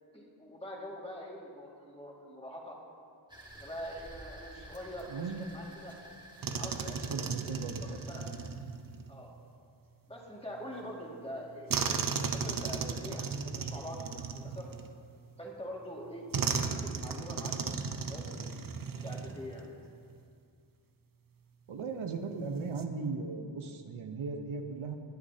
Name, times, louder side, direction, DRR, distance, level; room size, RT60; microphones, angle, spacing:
voice 1, 0.1-2.8 3.6-6.0 6.5-7.3 7.8-8.4 9.1-9.3 10.1-12.0 12.3-14.7 15.4-18.6 18.9-19.7, equal, 10° left, -3 dB, 2.0 m, -44 dB
sound 1, 3.3-8.5, right 1 dB, 10° right, 1.7 m, -52 dB
voice 2, 5.1-5.4 6.9-8.4 21.7-25.0, right 4 dB, 85° right, 5 dB, 0.9 m, -38 dB
sound 2, 6.4-9.1 11.7-15.2 16.3-19.7 20.0-20.2 22.5-22.8, right 5 dB, 45° right, 0.7 m, -35 dB
20.0 x 8.3 x 2.8 m, 2.3 s
wide cardioid pair, 70°, 48 cm